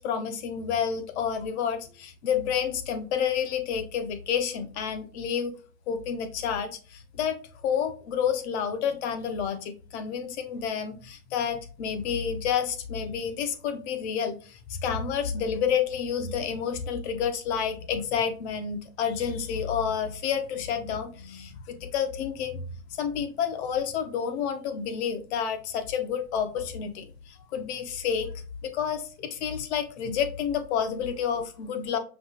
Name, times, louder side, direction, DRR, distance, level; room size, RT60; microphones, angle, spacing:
voice 1, 0.0-5.5 5.9-7.4 7.6-22.7 22.9-28.3 28.6-32.0, left 7 dB, 55° left, 8 dB, 0.8 m, -29 dB
5.4 x 2.8 x 2.8 m, 0.37 s
supercardioid pair, 150°, 42 cm